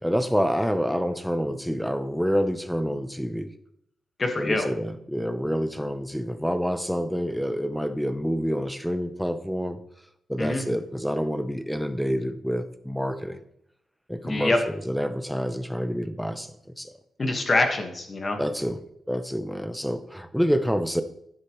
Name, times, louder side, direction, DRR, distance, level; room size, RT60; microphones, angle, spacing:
voice 1, 0.0-3.5 4.4-9.8 10.3-13.4 14.1-16.9 18.4-18.8 19.1-21.0, equal, ahead, 10 dB, 0.6 m, -27 dB
voice 2, 4.2-4.7 10.4-10.6 14.2-14.6 17.2-18.4, left 2 dB, 25° left, 4 dB, 1.4 m, -24 dB
11.5 x 9.9 x 3.0 m, 0.74 s
wide cardioid pair, 170°, 0 cm